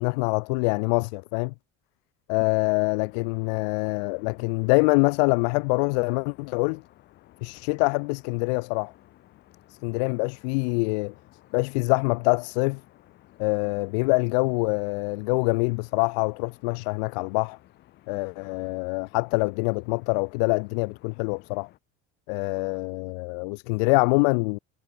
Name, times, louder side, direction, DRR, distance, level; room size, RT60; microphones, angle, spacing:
voice 1, 0.0-1.5 2.3-6.8 7.4-8.9 9.8-11.1 11.5-12.8 13.4-17.6 18.1-21.7 22.3-24.6, left 33 dB, 85° left, 0.5 m, -25 dB
sound 1, 3.0-21.8, left 15 dB, 55° left, 7.6 m, -56 dB
cardioid pair, 135°, 21 cm